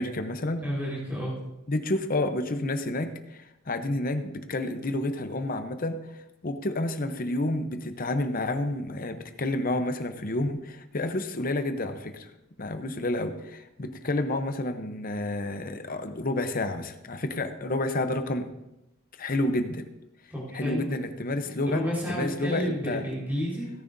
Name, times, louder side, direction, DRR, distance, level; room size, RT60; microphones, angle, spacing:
voice 1, 0.0-0.6 1.7-12.3 12.6-18.5 19.2-19.9 20.5-21.8 22.1-23.0, left 2 dB, 40° left, 8 dB, 0.8 m, -30 dB
voice 2, 0.6-1.3 20.3-20.9 21.6-23.7, equal, 10° right, -5 dB, 4.4 m, -30 dB
17.5 x 9.7 x 2.7 m, 0.92 s
head